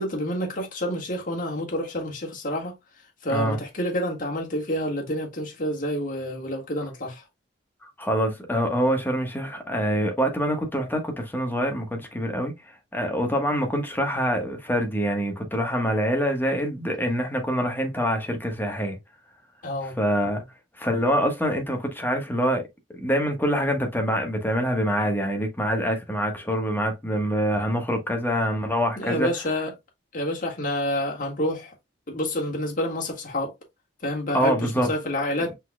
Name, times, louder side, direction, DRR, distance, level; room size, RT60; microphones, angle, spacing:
voice 1, 0.0-2.8 3.2-7.2 19.6-20.0 29.0-29.7 30.1-31.7 32.1-33.5 34.0-35.5, left 1 dB, 50° left, 1.7 m, -28 dB
voice 2, 8.0-12.5 12.9-19.0 20.0-20.4 20.8-22.6 23.0-29.3 34.3-34.9, equal, 10° left, 1.2 m, -25 dB
5.5 x 4.1 x 2.2 m
head